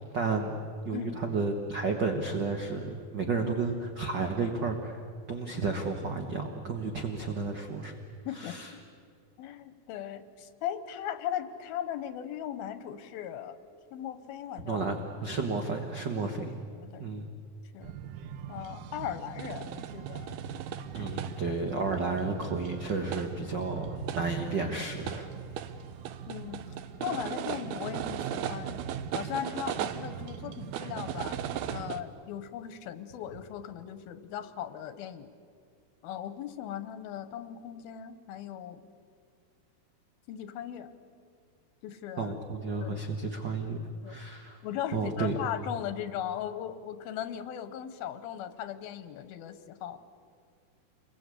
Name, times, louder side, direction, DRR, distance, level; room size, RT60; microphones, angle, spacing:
voice 1, 0.1-8.0 8.3-8.7 14.6-15.0 15.2-16.5 17.0-17.3 20.9-25.3 25.6-25.7 42.2-43.8 44.0-44.6 44.9-45.4, right 4 dB, 60° right, 4 dB, 1.1 m, -32 dB
voice 2, 8.3-8.6 9.4-13.5 13.9-14.8 16.7-17.0 17.7-18.0 18.5-20.4 21.0-21.1 21.5-21.6 26.3-26.7 27.0-28.8 29.1-31.4 31.7-35.3 36.0-38.8 40.3-40.9 41.8-42.3 42.8-43.0 44.0-44.2 44.6-50.0, left 10 dB, 90° left, 11 dB, 3.0 m, -38 dB
sound 1, 17.8-32.0, right 9 dB, 90° right, 2.8 m, -38 dB
28.0 x 22.5 x 8.4 m, 2.2 s
omnidirectional pair, 4.3 m